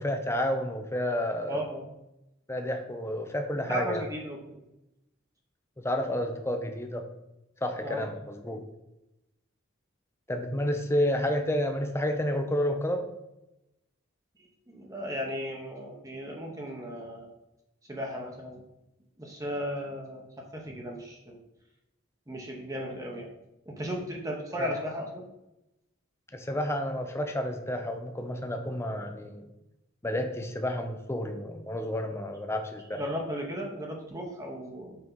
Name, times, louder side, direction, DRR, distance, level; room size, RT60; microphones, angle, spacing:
voice 1, 0.0-1.6 2.5-4.1 5.8-7.0 7.6-8.6 10.3-13.0 24.6-24.7 26.3-29.5 30.0-33.0, left 1 dB, 15° left, 5 dB, 0.7 m, -30 dB
voice 2, 1.5-1.9 3.5-4.6 7.8-8.1 14.7-17.3 17.9-18.6 19.2-20.3 20.5-21.4 22.3-23.3 23.7-25.2 32.9-35.0, equal, 15° right, -1 dB, 1.1 m, -35 dB
5.8 x 4.7 x 5.5 m, 0.90 s
head